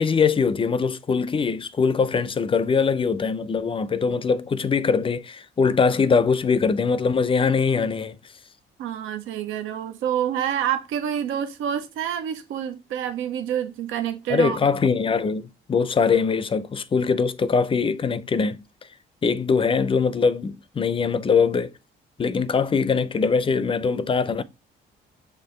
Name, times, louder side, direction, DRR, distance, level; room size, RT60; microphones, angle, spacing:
voice 1, 0.0-8.2 14.3-18.6 19.2-21.7 22.2-24.4, left 5 dB, 25° left, 0.4 m, -22 dB
voice 2, 8.8-14.6, right 10 dB, 90° right, 0.6 m, -27 dB
6.6 x 2.5 x 3.1 m
cardioid pair, 90°, 20 cm